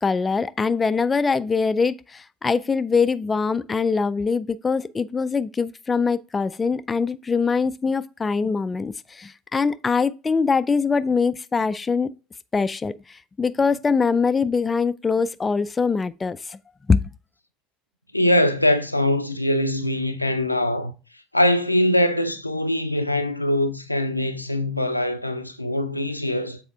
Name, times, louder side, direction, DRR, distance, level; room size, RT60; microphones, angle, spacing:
voice 1, 0.0-12.1 12.5-12.9 13.4-16.6 16.9-17.0, left 5 dB, 20° left, 0.4 m, -23 dB
voice 2, 18.1-20.9 21.3-26.6, left 1 dB, 90° left, 0.5 m, -22 dB
7.1 x 4.3 x 3.4 m
figure-of-eight pair, 65°, 0 cm